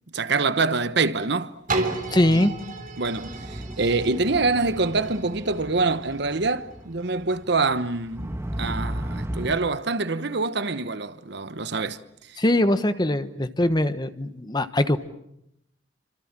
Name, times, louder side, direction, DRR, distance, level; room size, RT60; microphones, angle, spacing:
voice 1, 0.1-1.5 2.3-2.5 3.0-12.0 12.3-12.4, right 3 dB, 60° right, 1.1 m, -25 dB
sound 1, 1.7-7.4 8.0-8.1, right 3 dB, 45° right, 3.6 m, -34 dB
voice 2, 2.1-2.5 12.4-15.0, left 1 dB, 20° left, 1.1 m, -22 dB
sound 2, 3.2-9.6, right 1 dB, 15° right, 1.4 m, -35 dB
29.5 x 26.0 x 7.5 m
head